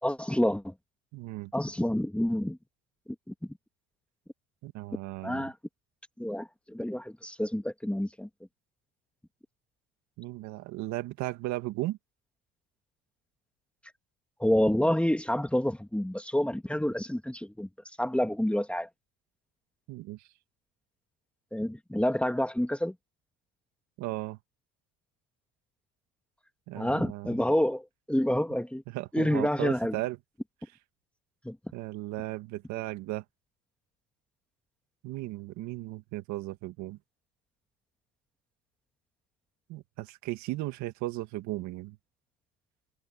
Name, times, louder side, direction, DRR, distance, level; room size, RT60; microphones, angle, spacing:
voice 1, 0.0-0.7 1.5-2.6 3.3-3.4 5.2-5.5 6.2-8.3 14.4-17.7 18.0-18.9 21.5-22.9 26.8-28.8 29.1-30.0 31.4-31.6, left 1 dB, 5° left, 2.1 m, -28 dB
voice 2, 1.1-1.5 4.6-5.5 10.2-12.0 19.9-20.3 24.0-24.4 26.7-27.4 28.9-30.2 31.7-33.2 35.0-37.0 39.7-42.0, right 18 dB, 75° right, 1.9 m, -36 dB
supercardioid pair, 90°, 29 cm